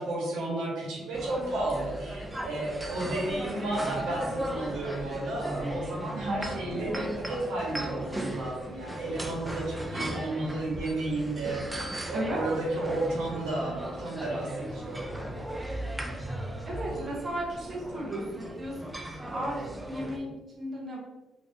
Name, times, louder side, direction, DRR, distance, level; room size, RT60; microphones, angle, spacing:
voice 1, 0.0-15.4 16.1-16.2 16.9-17.1, right 2 dB, 90° right, -4 dB, 1.3 m, -33 dB
sound 1, 1.1-20.2, right 1 dB, 15° right, 0.5 m, -37 dB
voice 2, 2.8-3.2 6.1-6.5 12.1-12.5 16.6-18.9 19.2-21.0, right 1 dB, 35° right, -4 dB, 1.1 m, -35 dB
3.8 x 3.0 x 2.7 m, 1.1 s
cardioid pair, 90°, 0 cm